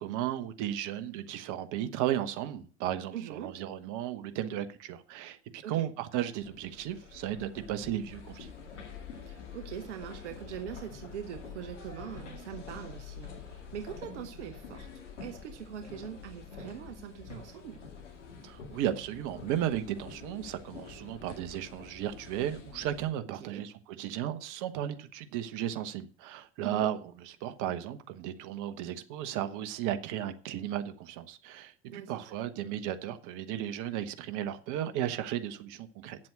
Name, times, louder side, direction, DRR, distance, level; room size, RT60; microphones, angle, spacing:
voice 1, 0.0-8.5 18.4-36.2, right 11 dB, 60° right, 1.3 m, -35 dB
voice 2, 3.1-3.6 5.6-5.8 9.2-14.9 15.2-17.8 23.2-23.7 26.6-26.9 31.9-32.4, right 9 dB, 75° right, 1.0 m, -42 dB
sound 1, 6.4-23.1, left 5 dB, 85° left, 2.1 m, -47 dB
8.6 x 7.6 x 7.8 m
hypercardioid pair, 65°, 35 cm